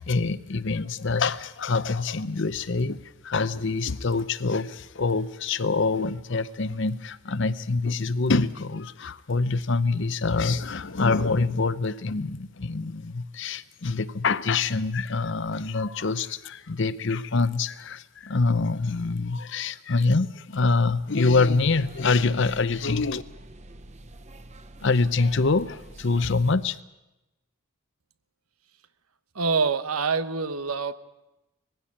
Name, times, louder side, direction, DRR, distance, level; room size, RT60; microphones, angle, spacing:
voice 1, 0.0-23.2 24.8-26.8, left 3 dB, 55° left, 15 dB, 0.7 m, -25 dB
sound 1, 21.4-26.6, right 1 dB, 30° right, 0.9 m, -46 dB
voice 2, 29.3-30.9, right 4 dB, 90° right, 12 dB, 1.1 m, -25 dB
20.5 x 16.0 x 8.7 m, 0.98 s
head